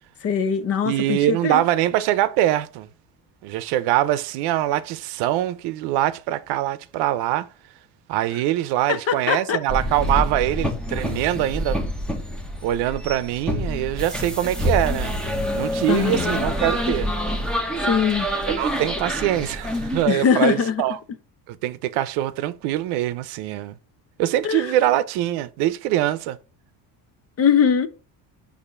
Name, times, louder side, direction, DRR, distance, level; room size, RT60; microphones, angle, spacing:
voice 1, 0.2-1.6 8.9-9.6 15.9-16.4 17.8-18.3 20.1-20.8 24.4-24.7 27.4-27.9, left 7 dB, 40° left, 0.7 m, -21 dB
voice 2, 0.8-2.9 3.4-7.5 8.1-11.9 12.6-15.2 15.5-17.1 18.6-21.0 21.5-23.7 24.2-26.4, right 13 dB, 90° right, 0.7 m, -23 dB
sound 1, 9.7-20.0, equal, ahead, 0.8 m, -26 dB
6.7 x 2.7 x 5.4 m
cardioid pair, 145°, 38 cm